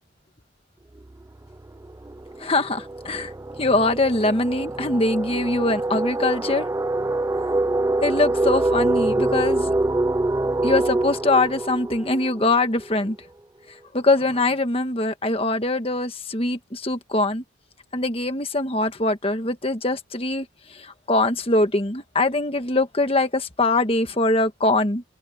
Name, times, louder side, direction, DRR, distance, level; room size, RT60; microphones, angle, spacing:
sound 1, 1.0-1.2 1.5-13.1, right 2 dB, 15° right, 0.3 m, -25 dB
voice 1, 2.4-3.3 3.6-6.7 8.0-9.7 10.6-13.2 13.9-17.4 17.9-25.0, left 2 dB, 30° left, 1.5 m, -23 dB
head